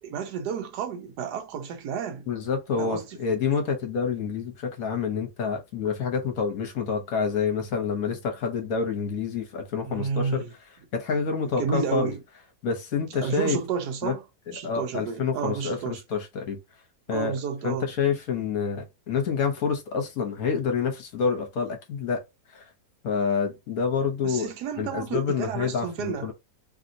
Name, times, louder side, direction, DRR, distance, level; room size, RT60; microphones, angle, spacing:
voice 1, 0.0-2.3 2.8-3.4 9.8-10.5 11.6-12.2 13.2-14.2 14.5-16.0 17.1-17.9 24.2-26.3, right 6 dB, 90° right, 1.2 m, -31 dB
voice 2, 2.3-10.4 10.9-12.1 12.6-13.6 14.0-14.1 14.6-16.6 17.1-17.4 17.6-22.2 22.5-22.7 23.0-24.5 24.8-26.3, left 5 dB, 65° left, 1.3 m, -27 dB
3.1 x 2.7 x 2.6 m
omnidirectional pair, 1.7 m